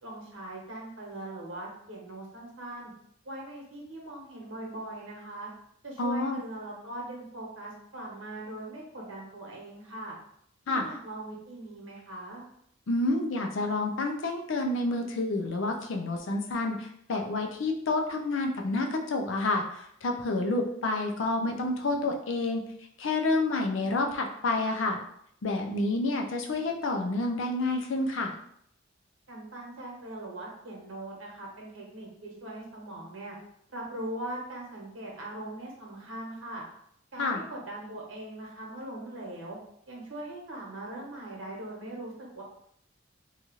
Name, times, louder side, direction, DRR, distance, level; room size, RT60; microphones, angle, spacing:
voice 1, 0.0-2.9 3.2-5.5 5.8-10.2 10.7-12.4 29.3-33.4 33.7-36.6 37.1-39.6 39.9-42.4, right 1 dB, 80° right, -3 dB, 1.0 m, -40 dB
voice 2, 6.0-6.4 10.7-10.9 12.9-22.6 23.0-25.0 25.4-28.3 37.2-37.4, left 2 dB, 70° left, 3 dB, 0.5 m, -29 dB
2.8 x 2.3 x 3.0 m, 0.71 s
head